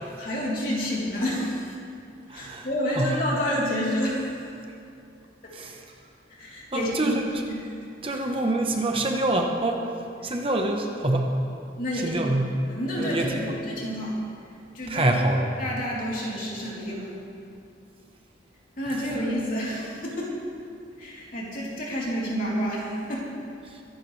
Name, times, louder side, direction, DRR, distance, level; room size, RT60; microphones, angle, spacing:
voice 1, 0.0-1.8 2.3-4.3 6.3-7.2 7.4-7.7 8.1-8.2 10.2-10.3 11.8-12.4 12.7-14.2 14.7-15.1 15.6-17.1 18.8-20.4 21.0-23.3, equal, 45° left, -5 dB, 3.3 m, -29 dB
voice 2, 2.3-2.7 3.0-3.1 5.5-5.8 6.7-7.2 8.0-9.8 10.2-11.3 12.0-12.5 13.0-13.4 14.9-15.5, right 2 dB, 30° right, 2 dB, 1.0 m, -25 dB
23.0 x 11.0 x 3.3 m, 2.5 s
head